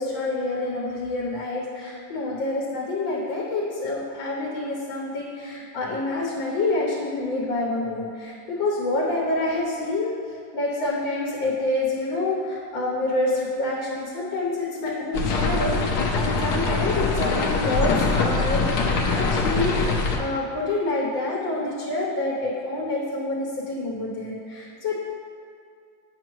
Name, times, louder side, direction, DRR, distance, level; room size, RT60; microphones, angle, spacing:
voice 1, 0.0-19.7 20.2-24.9, left 2 dB, 85° left, -4 dB, 1.6 m, -27 dB
sound 1, 15.1-20.2, left 3 dB, 65° left, 1.1 m, -23 dB
8.9 x 6.0 x 3.1 m, 2.4 s
omnidirectional pair, 2.0 m